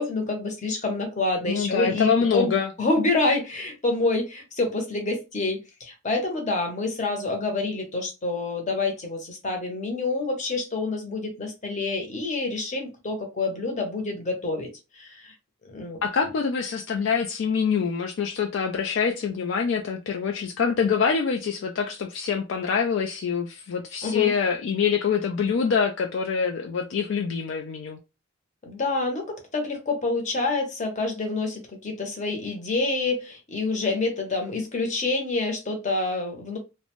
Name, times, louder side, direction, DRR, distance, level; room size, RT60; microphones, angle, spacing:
voice 1, 0.0-2.5 2.8-15.3 15.7-16.0 24.0-24.3 28.6-36.6, left 3 dB, 35° left, 0.8 m, -27 dB
voice 2, 1.5-2.7 16.0-28.0, left 6 dB, 65° left, 0.3 m, -25 dB
2.5 x 2.1 x 2.9 m
head